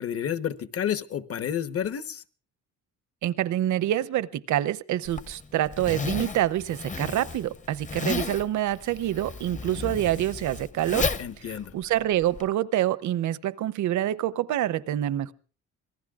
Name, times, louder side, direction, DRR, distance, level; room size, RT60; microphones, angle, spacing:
voice 1, 0.0-2.2 11.2-11.7, left 9 dB, 50° left, 11 dB, 1.1 m, -30 dB
voice 2, 3.2-11.1 11.4-15.3, right 13 dB, 75° right, 17 dB, 0.8 m, -26 dB
Zipper (clothing), 5.0-12.5, left 4 dB, 25° left, 0.8 m, -33 dB
26.0 x 18.5 x 2.4 m, 0.41 s
cardioid pair, 90°, 30 cm